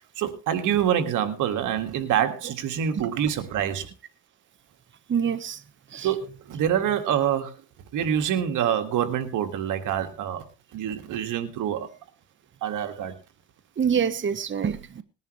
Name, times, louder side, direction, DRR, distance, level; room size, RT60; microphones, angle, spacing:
voice 1, 0.2-3.9 6.0-7.6 7.9-10.4 10.7-11.9 12.6-13.2, right 9 dB, 85° right, 7 dB, 1.9 m, -26 dB
voice 2, 5.1-5.6 5.9-6.1 13.8-15.0, right 7 dB, 40° right, 11 dB, 1.1 m, -26 dB
20.0 x 10.5 x 3.1 m, 0.30 s
cardioid pair, 90°, 30 cm